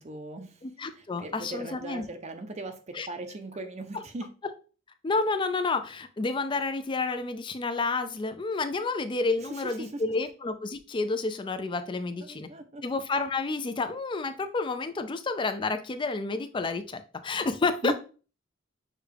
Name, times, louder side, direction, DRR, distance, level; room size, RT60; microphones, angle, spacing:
voice 1, 0.0-0.6 0.9-4.3 9.4-10.0 12.2-12.8 17.8-17.9, right 2 dB, 35° right, 7 dB, 0.5 m, -38 dB
voice 2, 0.6-2.0 2.9-3.1 3.9-4.0 5.0-12.5 12.8-17.9, left 3 dB, 25° left, 9 dB, 0.4 m, -30 dB
6.4 x 2.3 x 3.4 m, 0.36 s
head